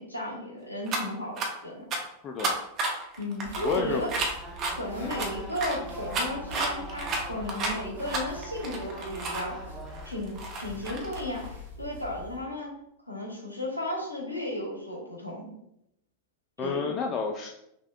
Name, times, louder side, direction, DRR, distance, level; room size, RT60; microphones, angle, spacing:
voice 1, 0.0-1.9 3.2-4.1 4.7-9.5 10.0-11.5 11.8-12.7 13.1-15.5 16.6-16.9, left 1 dB, 85° left, 0 dB, 0.9 m, -34 dB
sound 1, 0.9-1.0 1.4-1.5 1.9-2.0 2.4-4.7 5.1-9.5 9.9-11.5, right 3 dB, 35° right, 0.8 m, -31 dB
voice 2, 2.2-2.6 3.6-4.1 5.0-5.2 16.6-17.5, left 5 dB, 30° left, 2 dB, 0.3 m, -31 dB
sound 2, 3.4-12.4, left 3 dB, 80° right, 1.2 m, -44 dB
sound 3, 4.4-10.0, right 1 dB, 5° right, 1.1 m, -44 dB
5.8 x 2.3 x 2.3 m, 0.79 s
figure-of-eight pair, 90°, 0 cm